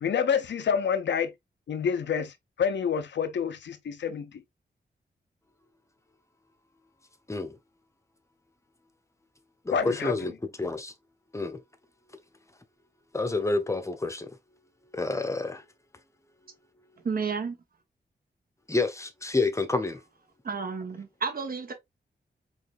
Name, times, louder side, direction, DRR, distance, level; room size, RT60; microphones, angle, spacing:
voice 1, 0.0-1.3 1.7-4.4 9.7-10.1, left 7 dB, 80° left, 0.6 m, -28 dB
voice 2, 9.6-10.3 10.6-10.9 11.3-11.6 13.1-14.3 14.9-15.6 18.7-20.0, left 3 dB, 15° left, 0.8 m, -28 dB
voice 3, 17.0-17.6 20.4-21.7, right 5 dB, 50° right, 1.2 m, -31 dB
4.8 x 3.2 x 2.5 m
wide cardioid pair, 105°, 18 cm